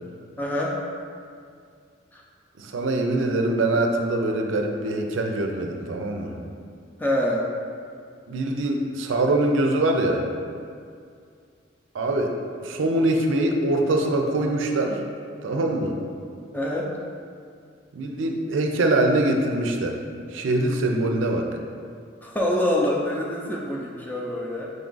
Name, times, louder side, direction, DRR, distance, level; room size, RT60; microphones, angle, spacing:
voice 1, 0.4-0.8 2.1-2.2 7.0-7.5 16.5-16.9 22.2-24.7, left 1 dB, 10° left, -3 dB, 0.4 m, -25 dB
voice 2, 2.6-6.4 8.3-10.2 11.9-12.3 12.6-15.0 15.4-16.0 17.9-20.0 20.3-21.5, right 2 dB, 80° right, 3 dB, 0.4 m, -23 dB
5.0 x 2.4 x 3.8 m, 2.3 s
head